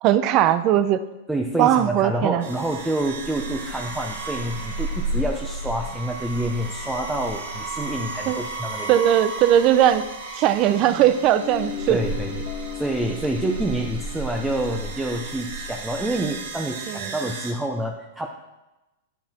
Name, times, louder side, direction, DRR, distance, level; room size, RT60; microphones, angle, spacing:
voice 1, 0.0-1.0 1.6-2.4 8.3-8.4 8.9-10.1 10.4-12.0 16.9-17.2, right 11 dB, 40° right, 13 dB, 0.6 m, -19 dB
voice 2, 1.3-9.0 11.9-12.4 12.7-18.3, right 1 dB, 5° right, 1 dB, 0.8 m, -27 dB
sound 1, 2.4-17.5, right 2 dB, 75° right, 2.2 m, -33 dB
Guitar, 10.7-15.8, left 9 dB, 40° left, 1.7 m, -37 dB
9.4 x 8.3 x 4.3 m, 1.0 s
hypercardioid pair, 125°, 0 cm